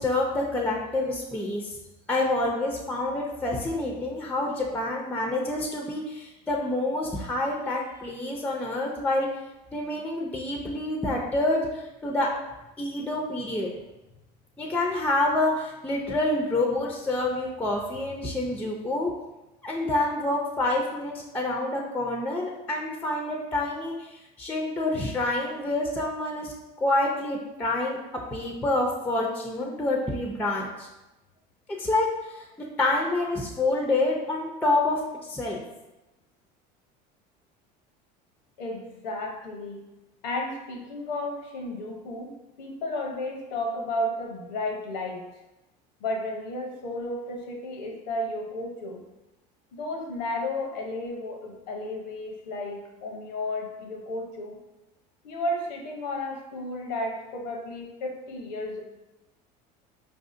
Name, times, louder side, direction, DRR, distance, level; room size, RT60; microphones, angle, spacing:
voice 1, 0.0-1.8 2.1-9.3 9.7-12.3 12.8-13.7 14.6-19.1 19.6-26.5 26.8-28.0 28.3-30.9 31.8-32.1 32.3-32.4 32.8-35.6, left 2 dB, 5° left, 0 dB, 0.4 m, -27 dB
voice 2, 38.6-39.8 40.2-42.3 42.6-45.2 46.0-49.0 49.7-54.6 55.2-58.8, left 1 dB, 90° left, 1 dB, 0.8 m, -33 dB
4.7 x 2.6 x 2.5 m, 1.0 s
supercardioid pair, 95°, 21 cm